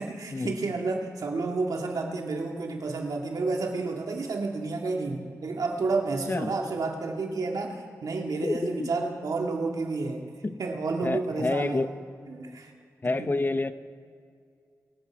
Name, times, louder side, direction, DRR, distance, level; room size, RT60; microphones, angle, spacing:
voice 1, 0.0-10.2 10.6-11.8 12.3-12.7 13.2-13.3, right 3 dB, 80° right, 2 dB, 1.9 m, -30 dB
voice 2, 8.4-8.9 10.4-10.6 11.0-11.9 13.0-13.7, left 3 dB, 35° left, 12 dB, 0.7 m, -28 dB
24.5 x 8.4 x 4.6 m, 2.3 s
cardioid pair, 55°, 6 cm